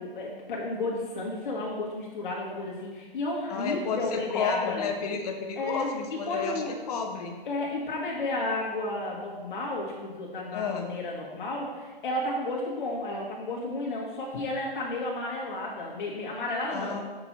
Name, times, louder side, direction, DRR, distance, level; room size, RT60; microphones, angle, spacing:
voice 1, 0.0-5.0 5.6-6.7 7.5-16.9, left 2 dB, 60° left, -3 dB, 1.8 m, -32 dB
voice 2, 3.5-6.6 6.9-7.4 10.5-10.9 16.7-17.0, left 5 dB, 40° left, 4 dB, 1.0 m, -31 dB
6.6 x 6.1 x 4.3 m, 1.3 s
hypercardioid pair, 140°, 29 cm